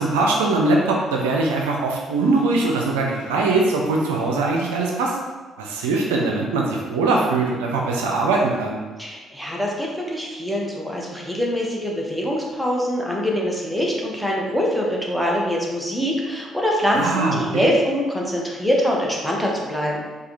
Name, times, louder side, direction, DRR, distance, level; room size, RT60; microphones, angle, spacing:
voice 1, 0.0-5.2 5.6-8.8 16.9-17.7, right 3 dB, 80° right, 0 dB, 0.4 m, -21 dB
voice 2, 9.0-20.0, equal, ahead, -2 dB, 1.0 m, -24 dB
4.6 x 2.3 x 3.1 m, 1.3 s
hypercardioid pair, 45°, 0 cm